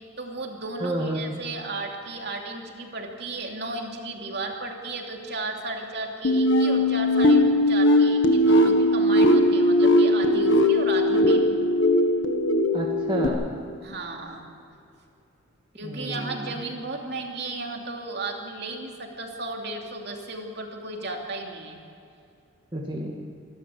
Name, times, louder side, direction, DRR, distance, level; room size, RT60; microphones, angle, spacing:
voice 1, 0.2-11.5 13.8-14.5 15.8-21.8, right 2 dB, 50° right, 1 dB, 2.8 m, -34 dB
voice 2, 0.8-1.3 12.7-13.5 15.8-16.6 22.7-23.2, right 1 dB, 20° right, -1 dB, 2.0 m, -30 dB
sound 1, 6.2-13.3, left 1 dB, 65° left, 1.8 m, -19 dB
27.5 x 12.5 x 8.4 m, 2.7 s
head